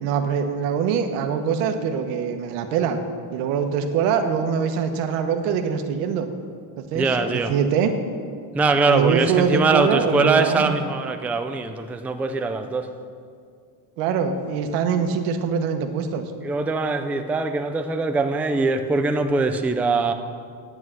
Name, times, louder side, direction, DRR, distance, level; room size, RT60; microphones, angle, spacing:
voice 1, 0.0-3.0 3.3-6.3 6.8-7.9 8.9-10.8 14.0-16.2, right 7 dB, 90° right, 6 dB, 1.3 m, -23 dB
voice 2, 6.9-7.5 8.5-12.9 16.4-20.1, right 3 dB, 5° right, 6 dB, 0.4 m, -22 dB
9.5 x 8.1 x 7.6 m, 2.2 s
cardioid pair, 125°, 49 cm